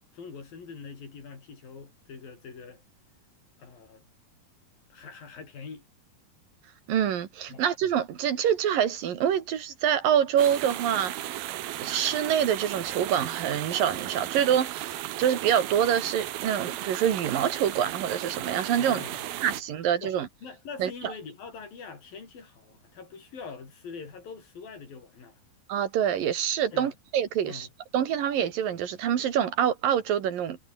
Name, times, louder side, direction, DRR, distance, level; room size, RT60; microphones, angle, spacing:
voice 1, 0.1-2.8 3.6-4.1 4.9-5.8 7.5-7.7 18.8-19.6 20.0-25.4 26.7-26.9 27.4-27.7, left 5 dB, 70° left, 7.0 m, -43 dB
voice 2, 6.9-11.4 11.8-14.9 15.2-19.0 19.4-20.3 20.8-21.1 25.7-27.7 27.9-30.6, right 9 dB, 70° right, 3.7 m, -26 dB
sound 1, 10.4-19.6, right 14 dB, 90° right, 3.2 m, -35 dB
omnidirectional pair, 4.2 m